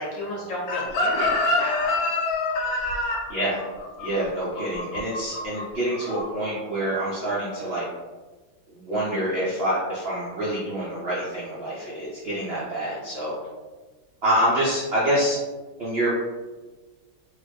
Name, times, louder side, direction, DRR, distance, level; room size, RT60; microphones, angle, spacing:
voice 1, 0.0-2.0, left 1 dB, 60° left, -5 dB, 1.1 m, -33 dB
Chicken rooster, 0.7-5.6 5.9-6.3, left 2 dB, 85° left, 1.4 m, -26 dB
voice 2, 3.3-3.6 4.0-7.8 8.8-13.3 14.2-15.4 15.8-16.1, right 1 dB, 85° right, -8 dB, 0.5 m, -26 dB
2.9 x 2.4 x 3.3 m, 1.3 s
omnidirectional pair, 2.1 m